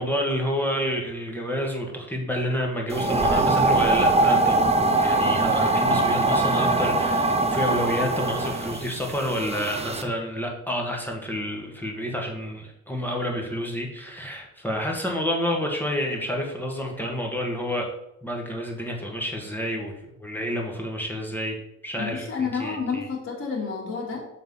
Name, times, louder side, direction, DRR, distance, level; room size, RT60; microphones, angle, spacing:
voice 1, 0.0-4.7 5.0-17.9 18.2-21.6 21.8-23.1, equal, 5° left, 0 dB, 2.0 m, -29 dB
sound 1, 2.9-10.0, right 2 dB, 20° right, 0.9 m, -22 dB
voice 2, 22.0-24.3, left 5 dB, 45° left, -4 dB, 2.8 m, -30 dB
6.8 x 4.2 x 5.7 m, 0.80 s
cardioid pair, 90°, 30 cm